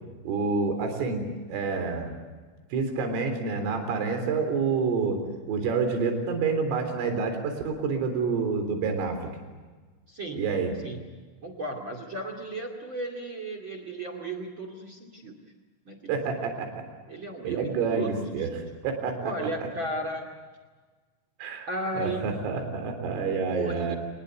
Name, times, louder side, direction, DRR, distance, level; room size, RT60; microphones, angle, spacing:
voice 1, 0.2-2.1 2.7-5.2 5.5-9.3 10.3-10.7 16.1-16.8 17.4-19.7 21.4-21.7 21.9-24.0, right 4 dB, 85° right, 6 dB, 6.3 m, -28 dB
voice 2, 10.1-10.4 10.8-11.1 11.4-15.4 15.9-16.2 17.1-18.5 19.2-20.3 21.7-22.3 23.5-23.9, right 1 dB, 40° right, 6 dB, 2.0 m, -35 dB
27.5 x 20.5 x 8.2 m, 1.4 s
omnidirectional pair, 5.7 m